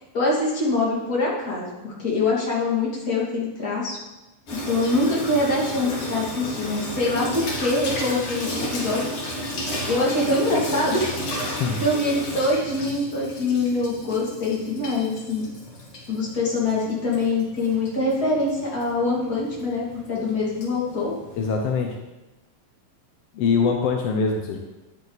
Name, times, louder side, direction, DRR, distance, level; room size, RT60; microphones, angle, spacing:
voice 1, 0.1-4.0 4.7-9.0 9.9-11.1 11.8-15.5 16.1-21.1, left 2 dB, 30° left, -5 dB, 2.7 m, -24 dB
Water tap faucet / Sink (filling or washing), 4.5-21.9, equal, 45° left, 2.5 m, -33 dB
voice 2, 21.4-22.0 23.3-24.6, left 5 dB, 80° left, 2 dB, 1.4 m, -23 dB
10.5 x 9.5 x 4.1 m, 1.1 s
omnidirectional pair, 3.9 m